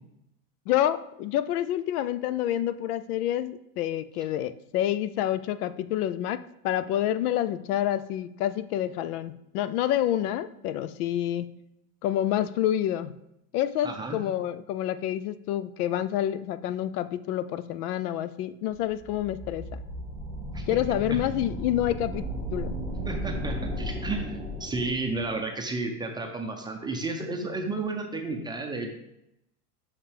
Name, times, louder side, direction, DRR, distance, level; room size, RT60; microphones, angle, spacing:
voice 1, 0.7-6.4 6.6-11.5 12.0-13.1 13.5-19.8 20.7-22.2 22.5-22.8, left 12 dB, 70° left, 14 dB, 0.6 m, -28 dB
voice 2, 13.8-14.2 20.5-20.6 21.1-21.2 23.0-28.9, right 3 dB, 10° right, 2 dB, 0.6 m, -32 dB
sound 1, 18.8-25.3, equal, 10° left, 2.4 m, -35 dB
6.6 x 5.6 x 3.3 m, 0.81 s
supercardioid pair, 135°, 47 cm